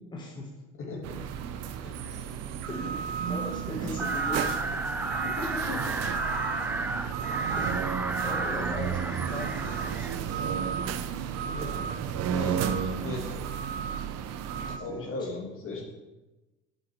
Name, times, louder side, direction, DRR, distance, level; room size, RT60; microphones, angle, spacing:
voice 1, 0.1-0.5 2.7-4.9 7.3-10.1 14.7-15.3, left 2 dB, 15° left, -1 dB, 1.2 m, -40 dB
voice 2, 0.8-1.2 1.8-2.2 5.0-5.8 11.4-13.5 14.8-15.8, left 3 dB, 45° left, -1 dB, 2.1 m, -38 dB
sound 1, 1.0-14.8, right 7 dB, 55° right, 0.7 m, -32 dB
sound 2, 4.0-10.2, right 2 dB, 5° right, 0.3 m, -33 dB
7.5 x 4.8 x 4.5 m, 1.1 s
hypercardioid pair, 80°, 31 cm